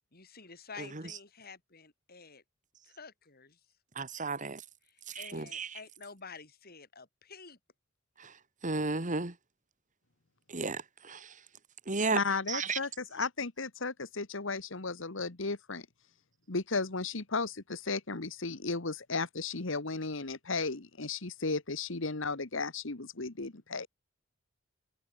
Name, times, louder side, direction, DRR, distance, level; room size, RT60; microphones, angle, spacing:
voice 1, 0.0-2.4 2.8-3.6 4.9-7.6, left 5 dB, 50° left, 5.8 m, -50 dB
voice 2, 0.8-1.2 4.0-4.6 5.1-5.8 8.2-8.3 8.6-9.3 10.5-11.4 11.9-12.2 12.5-12.8, right 3 dB, 40° right, 2.3 m, -34 dB
voice 3, 12.1-15.9 16.5-23.9, left 4 dB, 70° left, 1.7 m, -34 dB
head